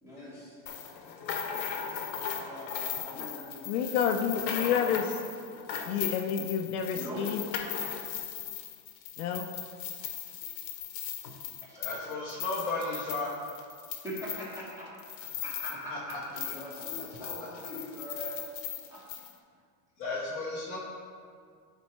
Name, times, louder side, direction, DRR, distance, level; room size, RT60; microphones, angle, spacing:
voice 1, 0.0-0.6 2.4-4.0 6.9-7.3 11.6-11.8 14.0-14.9 15.2-18.4 18.9-19.0, equal, 5° right, -7 dB, 1.3 m, -42 dB
sound 1, 0.7-15.8 16.1-19.3, left 8 dB, 90° left, 1.0 m, -38 dB
voice 2, 3.7-5.1 5.9-7.4 9.2-9.5, left 7 dB, 60° left, 5 dB, 0.6 m, -29 dB
voice 3, 11.8-13.3 15.9-16.2 20.0-20.8, left 3 dB, 15° left, -6 dB, 0.6 m, -34 dB
9.5 x 4.2 x 3.2 m, 2.1 s
supercardioid pair, 160°, 50 cm